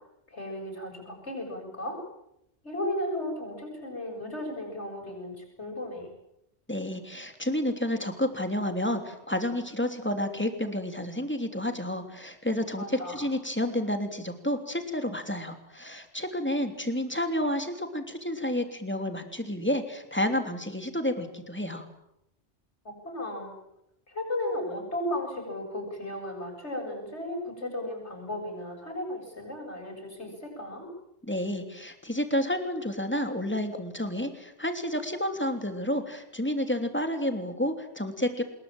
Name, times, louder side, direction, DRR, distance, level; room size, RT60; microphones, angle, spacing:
voice 1, 0.3-2.0 2.6-6.1 12.8-13.3 22.8-23.5 24.1-30.9, left 1 dB, 75° left, 1 dB, 8.1 m, -35 dB
voice 2, 6.7-21.9 31.2-38.4, left 1 dB, 10° left, 6 dB, 3.2 m, -30 dB
26.0 x 21.5 x 9.0 m, 0.81 s
omnidirectional pair, 1.2 m